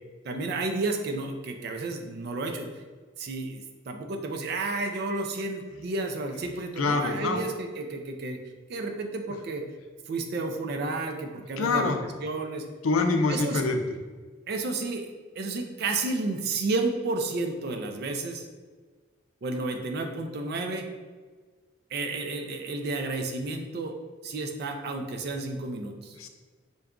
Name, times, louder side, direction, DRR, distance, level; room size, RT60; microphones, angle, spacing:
voice 1, 0.2-2.7 3.2-8.4 8.7-9.6 10.1-11.9 12.2-12.6 13.3-13.6 14.5-15.1 15.4-18.5 19.4-20.9 21.9-23.9 24.2-26.2, right 3 dB, 50° right, 5 dB, 0.4 m, -31 dB
voice 2, 6.8-7.4 11.6-12.0 12.8-13.8 26.2-26.3, left 3 dB, 90° left, 5 dB, 0.4 m, -25 dB
3.9 x 2.3 x 3.6 m, 1.5 s
head